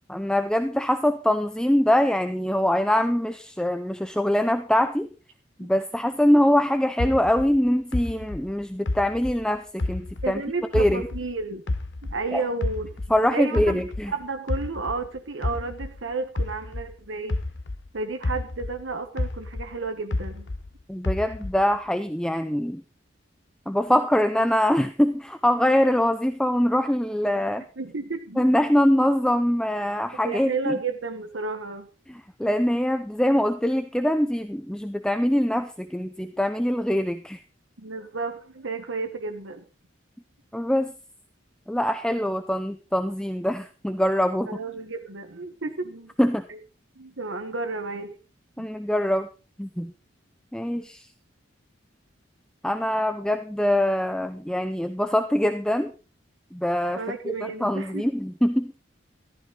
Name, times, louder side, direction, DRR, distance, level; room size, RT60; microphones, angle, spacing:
voice 1, 0.1-5.1 5.6-10.4 10.7-11.1 12.3-12.4 13.1-14.1 20.9-22.8 23.7-27.6 28.4-30.8 32.1-37.4 40.5-40.9 41.7-44.6 46.2-46.4 48.6-49.3 49.6-49.9 50.5-51.1 52.6-55.9 56.5-58.7, left 1 dB, 5° left, 8 dB, 0.6 m, -23 dB
sound 1, 7.0-10.4 10.7-13.2 13.5-17.9 18.2-20.7 21.0-21.8, left 2 dB, 70° left, 1.1 m, -30 dB
voice 2, 10.2-11.6 12.0-13.0 13.3-13.8 14.1-17.4 17.9-20.5 27.8-28.5 30.3-31.9 37.8-39.6 44.5-46.1 46.5-46.6 47.0-48.2 48.6-48.7 56.9-58.1, right 3 dB, 85° right, 6 dB, 1.2 m, -32 dB
15.0 x 13.5 x 3.9 m, 0.35 s
head